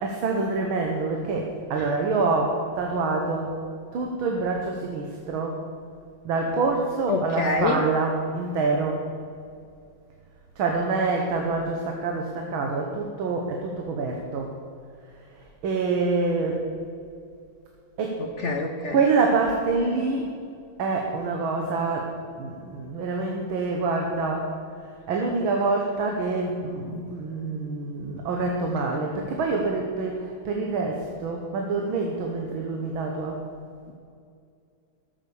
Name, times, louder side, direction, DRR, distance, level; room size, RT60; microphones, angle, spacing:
voice 1, 0.0-3.6 3.9-5.6 6.3-9.0 10.6-14.5 15.6-16.7 18.0-18.2 18.9-20.3 20.8-24.5 25.1-33.4, right 3 dB, 80° right, 1 dB, 1.9 m, -26 dB
voice 2, 7.1-7.8 18.4-19.0, left 3 dB, 65° left, 4 dB, 0.7 m, -25 dB
12.5 x 7.3 x 6.9 m, 2.4 s
omnidirectional pair, 2.2 m